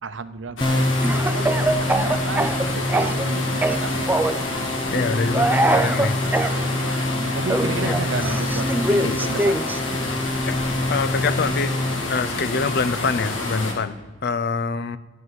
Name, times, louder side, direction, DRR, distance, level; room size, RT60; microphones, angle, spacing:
voice 1, 0.0-4.1 6.1-10.1, right 4 dB, 75° right, 13 dB, 0.7 m, -33 dB
sound 1, 0.6-13.7, left 2 dB, 85° left, 2.5 m, -28 dB
sound 2, 0.6-11.9, left 1 dB, 25° left, 0.8 m, -26 dB
Speech / Cough, 1.0-3.3 3.6-4.4 5.3-6.5 7.5-9.8, right 2 dB, 10° right, 0.5 m, -23 dB
voice 2, 4.9-6.2 7.8-7.9 9.0-9.2 10.5-11.8 12.1-15.0, left 4 dB, 55° left, 15 dB, 0.5 m, -25 dB
10.5 x 7.5 x 7.8 m, 1.3 s
head